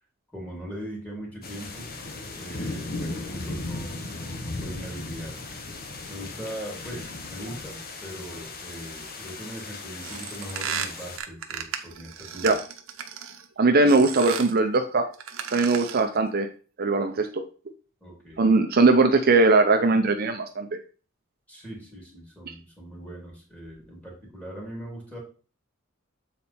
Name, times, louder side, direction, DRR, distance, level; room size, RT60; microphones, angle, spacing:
voice 1, 0.3-1.8 2.3-5.4 6.1-12.5 18.0-18.4 21.5-25.2, equal, 5° left, -2 dB, 2.9 m, -40 dB
sound 1, 1.4-11.2, left 2 dB, 50° left, 1.0 m, -37 dB
sound 2, 10.0-13.5 13.9-14.6 15.1-16.1, right 8 dB, 80° right, 0.9 m, -35 dB
voice 2, 13.6-15.1 15.5-16.5 16.8-17.4 18.4-20.7, right 3 dB, 50° right, 5 dB, 0.6 m, -20 dB
7.3 x 4.2 x 4.3 m, 0.38 s
head